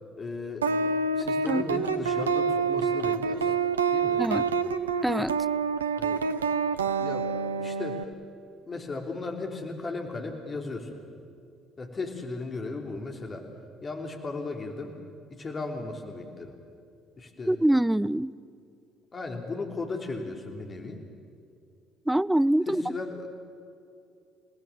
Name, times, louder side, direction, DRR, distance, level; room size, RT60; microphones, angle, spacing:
voice 1, 0.2-0.7 1.1-3.5 3.9-4.5 6.0-6.3 7.0-7.3 7.6-8.1 8.7-11.0 11.8-13.5 13.8-15.0 15.3-16.6 17.2-17.5 19.1-21.0 22.7-23.3, left 3 dB, 35° left, 3.2 m, -36 dB
sound 1, 0.6-8.0, right 5 dB, 85° right, 0.8 m, -27 dB
voice 2, 5.0-5.4 17.5-18.3 22.1-22.8, right 1 dB, 5° right, 0.5 m, -24 dB
29.5 x 18.5 x 7.5 m
figure-of-eight pair, 50°, 0 cm